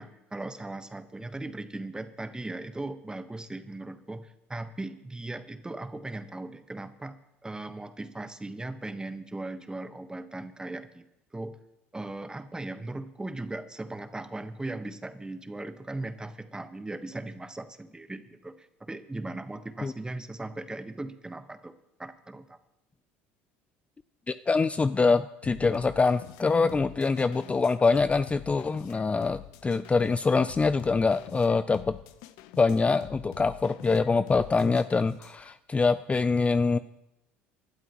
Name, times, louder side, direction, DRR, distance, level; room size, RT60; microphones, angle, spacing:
voice 1, 0.0-7.2 7.4-11.0 11.3-11.5 11.9-21.7 22.0-22.6, right 2 dB, 10° right, 10 dB, 1.3 m, -38 dB
voice 2, 24.3-32.0 32.6-36.8, left 4 dB, 20° left, 13 dB, 0.5 m, -24 dB
sound 1, 25.4-35.5, left 13 dB, 65° left, 0.9 m, -47 dB
25.0 x 12.0 x 3.1 m, 0.88 s
hypercardioid pair, 70°, 6 cm